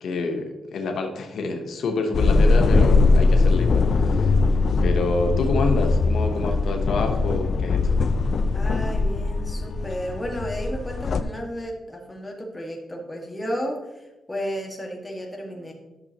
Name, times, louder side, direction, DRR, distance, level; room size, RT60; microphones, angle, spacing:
voice 1, 0.0-4.4 4.8-8.0, left 3 dB, 75° left, 4 dB, 1.0 m, -27 dB
sound 1, 2.1-11.2, left 3 dB, 55° left, 0.5 m, -20 dB
voice 2, 8.5-15.7, equal, 10° left, -1 dB, 1.8 m, -33 dB
11.5 x 6.7 x 3.0 m, 1.0 s
cardioid pair, 115°, 0 cm